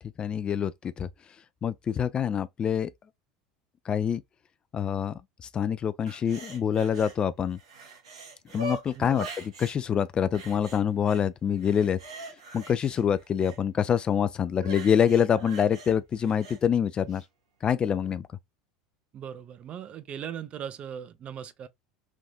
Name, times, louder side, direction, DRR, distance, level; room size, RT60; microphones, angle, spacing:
voice 1, 0.2-1.1 1.6-2.9 3.9-4.2 4.7-7.6 8.5-12.0 12.5-17.2 17.6-18.3, left 8 dB, 30° left, 0.3 m, -26 dB
sound 1, 6.1-7.2 7.5-9.8 10.3-11.2 11.6-13.6 14.6-16.6 17.1-17.2, right 2 dB, 85° right, 1.2 m, -42 dB
voice 2, 8.9-9.3 19.1-21.7, right 9 dB, 40° right, 0.5 m, -39 dB
3.4 x 2.6 x 2.2 m
hypercardioid pair, 85°, 3 cm